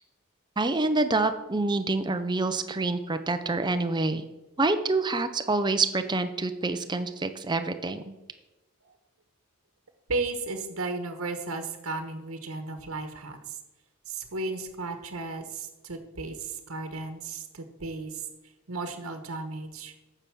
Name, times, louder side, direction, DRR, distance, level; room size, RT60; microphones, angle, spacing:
voice 1, 0.6-4.2 4.6-8.1, right 3 dB, 20° right, 9 dB, 0.6 m, -27 dB
voice 2, 10.1-13.6 14.1-18.3 18.7-19.9, right 3 dB, 75° right, 7 dB, 1.2 m, -34 dB
9.0 x 7.0 x 6.2 m, 1.0 s
head